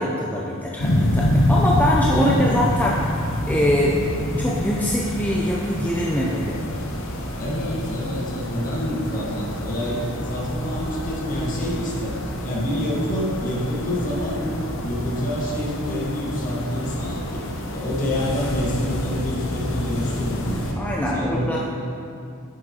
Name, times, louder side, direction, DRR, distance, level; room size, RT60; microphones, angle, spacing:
voice 1, 0.0-3.1 3.5-4.0 4.4-6.6 20.8-21.7, equal, 10° left, -4 dB, 0.5 m, -23 dB
sound 1, 0.8-20.7, left 1 dB, 65° left, 0.9 m, -27 dB
voice 2, 2.1-2.5 3.9-4.0 7.4-12.1 12.4-17.4 17.7-20.7 21.1-21.7, left 1 dB, 40° left, -5 dB, 1.6 m, -27 dB
9.8 x 6.4 x 2.9 m, 2.4 s
head